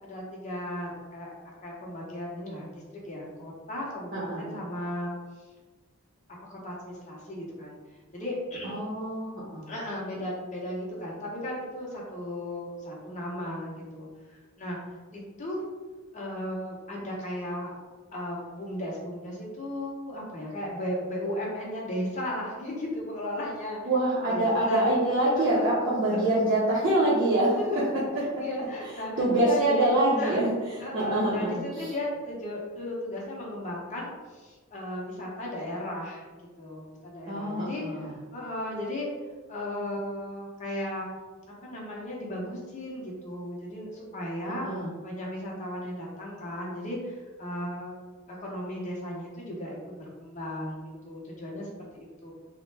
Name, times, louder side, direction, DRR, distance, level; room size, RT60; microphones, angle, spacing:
voice 1, 0.0-5.1 6.4-7.8 8.1-8.8 9.7-14.8 15.1-15.6 16.1-17.7 18.1-23.8 24.3-24.9 25.3-25.8 26.1-26.5 27.6-30.5 30.8-37.8 38.3-39.1 39.5-41.1 41.5-44.7 45.0-48.0 48.3-50.8 51.0-52.3, left 1 dB, 35° left, -4 dB, 0.7 m, -35 dB
voice 2, 4.1-4.5 8.6-9.7 23.8-27.6 28.8-30.5 30.9-31.9 37.3-38.1 44.6-44.9, right 1 dB, 40° right, -9 dB, 0.6 m, -25 dB
3.3 x 2.1 x 3.2 m, 1.3 s
head